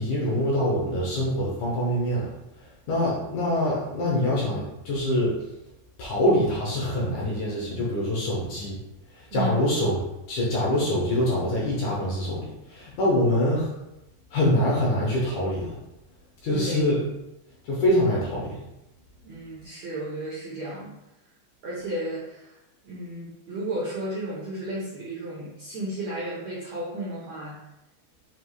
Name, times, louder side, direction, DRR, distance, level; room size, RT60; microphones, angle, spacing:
voice 1, 0.0-2.3 2.6-5.4 6.0-8.8 9.1-10.0 10.3-13.7 14.3-15.8 16.4-17.0 17.6-18.6, left 1 dB, 65° left, -4 dB, 2.0 m, -25 dB
voice 2, 16.5-16.9 19.2-20.9 21.6-22.6 22.8-27.5, right 1 dB, 85° right, -6 dB, 1.5 m, -33 dB
7.9 x 2.8 x 4.8 m, 0.91 s
omnidirectional pair, 5.1 m